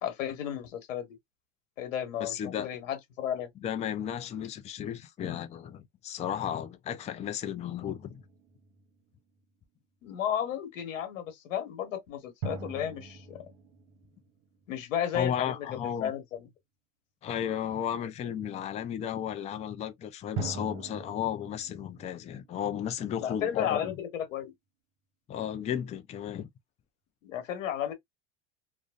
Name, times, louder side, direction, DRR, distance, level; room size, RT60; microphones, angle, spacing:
voice 1, 0.0-1.2 1.8-3.5 10.0-13.5 14.7-16.5 23.2-24.5 27.2-27.9, left 9 dB, 85° left, 1.2 m, -33 dB
voice 2, 2.2-2.7 3.6-8.2 15.1-16.1 17.2-24.0 25.3-26.5, left 9 dB, 20° left, 0.3 m, -34 dB
sound 1, 7.8-9.4 12.4-15.1 20.4-23.3, right 4 dB, 75° right, 0.8 m, -42 dB
2.5 x 2.1 x 2.3 m
hypercardioid pair, 95°, 38 cm